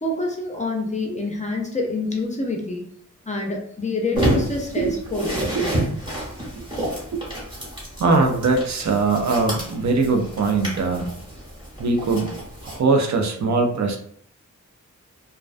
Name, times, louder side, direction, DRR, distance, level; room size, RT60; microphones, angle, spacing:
voice 1, 0.0-2.8 3.3-6.0, left 2 dB, 25° left, 0 dB, 0.4 m, -27 dB
sound 1, 4.1-12.8, right 1 dB, 15° right, 1.0 m, -29 dB
voice 2, 6.6-7.2 8.0-11.2 11.8-12.3 12.6-14.0, right 3 dB, 60° right, 4 dB, 0.5 m, -21 dB
2.3 x 2.2 x 2.4 m, 0.64 s
wide cardioid pair, 115°, 31 cm